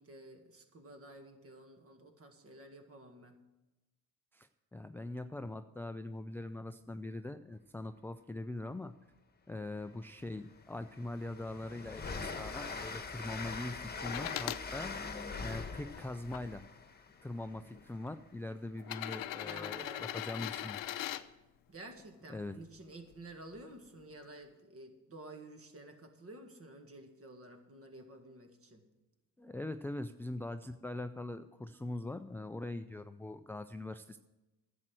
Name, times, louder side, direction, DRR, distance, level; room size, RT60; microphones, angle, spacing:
voice 1, 0.0-3.4 19.3-20.2 21.7-28.8, right 2 dB, 35° right, 6 dB, 2.0 m, -52 dB
voice 2, 4.3-8.9 9.5-14.9 15.4-16.6 17.2-20.8 22.3-22.6 29.4-34.2, left 2 dB, 5° left, 9 dB, 0.4 m, -42 dB
Train, 9.9-10.0 10.4-18.1, left 4 dB, 25° left, 1.4 m, -43 dB
sound 1, 14.0-14.6 15.4-16.4 17.4-17.5 18.8-21.2 23.1-23.2, left 13 dB, 60° left, 0.7 m, -40 dB
11.0 x 7.7 x 7.5 m, 1.0 s
supercardioid pair, 75°, 38 cm